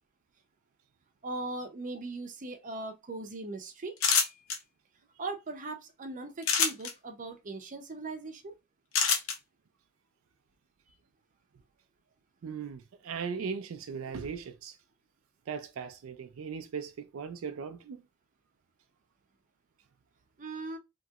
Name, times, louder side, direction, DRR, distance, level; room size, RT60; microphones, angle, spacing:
voice 1, 1.2-3.9 5.2-8.5 20.4-20.8, right 2 dB, 40° right, 0.6 m, -39 dB
sound 1, 4.0-4.6 6.4-6.9 8.9-9.3, left 6 dB, 75° left, 0.7 m, -25 dB
voice 2, 12.4-14.8 15.5-18.0, right 6 dB, 90° right, 0.4 m, -38 dB
2.9 x 2.8 x 2.3 m
head